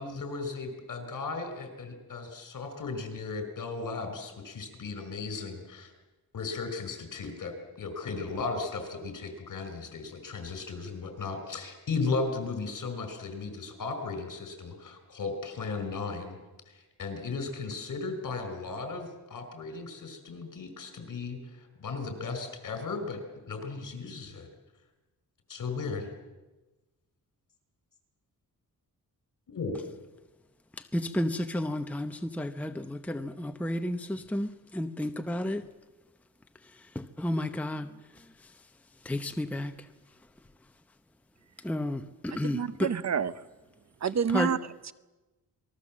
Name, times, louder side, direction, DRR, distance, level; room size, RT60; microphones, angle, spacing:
voice 1, 0.0-5.9 6.3-16.4 16.7-23.2 23.5-24.5 25.5-26.1 29.5-29.8, left 4 dB, 60° left, 5.1 m, -36 dB
voice 2, 30.8-35.6 36.6-38.5 39.0-39.9 41.6-42.9 44.3-44.5, left 1 dB, 5° left, 0.8 m, -32 dB
voice 3, 42.4-43.3 44.0-44.6, right 6 dB, 50° right, 0.8 m, -28 dB
26.5 x 21.0 x 7.5 m
wide cardioid pair, 140°, 36 cm